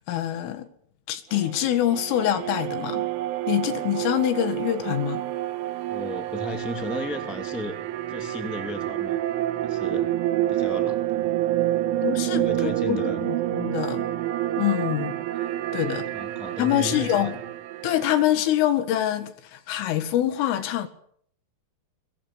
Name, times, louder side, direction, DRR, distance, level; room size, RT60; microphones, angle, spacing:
voice 1, 0.1-0.7 1.1-3.1 3.5-5.2 12.0-13.0 13.5-14.1 14.6-15.2 15.7-16.1 16.6-17.4 17.8-20.9, left 12 dB, 85° left, 4.4 m, -25 dB
sound 1, 1.3-18.2, right 13 dB, 80° right, 3.7 m, -28 dB
voice 2, 5.9-7.8 8.1-9.2 9.6-10.1 10.5-11.4 12.3-13.2 15.8-17.4, left 1 dB, ahead, 0.8 m, -35 dB
22.5 x 21.0 x 8.3 m
omnidirectional pair, 5.6 m